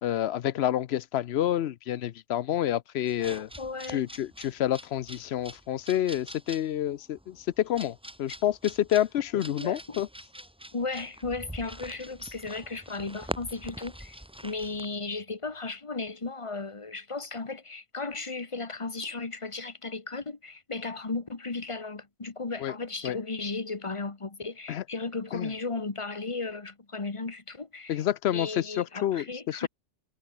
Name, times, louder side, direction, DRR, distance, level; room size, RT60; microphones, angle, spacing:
voice 1, 0.0-3.5 3.9-10.1 22.6-22.7 23.0-23.2 24.7-24.8 25.3-25.5 27.9-29.7, left 11 dB, 65° left, 0.8 m, -28 dB
sound 1, 3.1-14.9, equal, 5° right, 1.5 m, -44 dB
voice 2, 3.6-4.1 9.3-10.0 10.7-28.0 28.3-29.7, left 3 dB, 25° left, 1.4 m, -35 dB
omnidirectional pair, 1.2 m